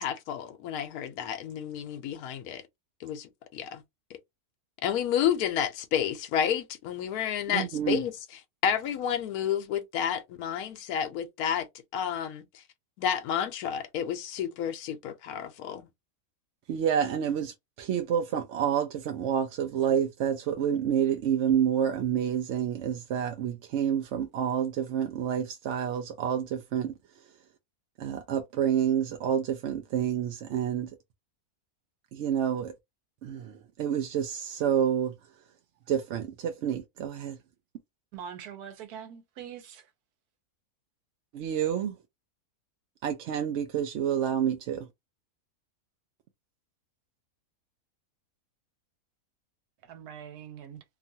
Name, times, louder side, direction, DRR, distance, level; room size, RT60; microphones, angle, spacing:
voice 1, 0.0-2.6 3.0-3.8 4.8-8.1 8.6-11.7 11.9-12.6 13.0-15.9, left 9 dB, 85° left, 1.1 m, -30 dB
voice 2, 7.5-8.0 16.7-26.9 28.0-30.9 32.1-32.7 33.2-35.1 35.9-37.4 41.3-41.9 43.0-44.9, right 9 dB, 65° right, 0.7 m, -28 dB
voice 3, 38.1-39.9 49.8-50.8, right 8 dB, 90° right, 1.2 m, -43 dB
2.8 x 2.4 x 2.7 m
omnidirectional pair, 1.6 m